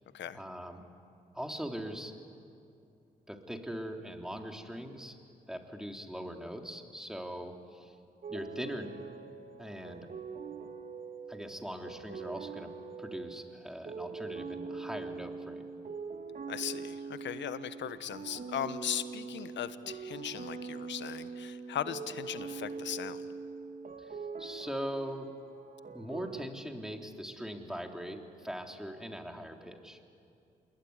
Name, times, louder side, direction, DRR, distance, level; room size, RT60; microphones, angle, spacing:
voice 1, 0.3-0.8 1.3-2.1 3.3-5.2 5.5-8.0 8.3-8.9 9.6-10.1 11.3-12.7 13.0-15.7 24.0-25.3 25.9-30.0, equal, 5° right, 3 dB, 3.7 m, -41 dB
sound 1, 8.2-26.4, right 5 dB, 45° right, 2.2 m, -43 dB
voice 2, 16.5-23.3, left 10 dB, 75° left, 13 dB, 1.2 m, -38 dB
27.5 x 21.5 x 9.8 m, 2.5 s
supercardioid pair, 50°, 19 cm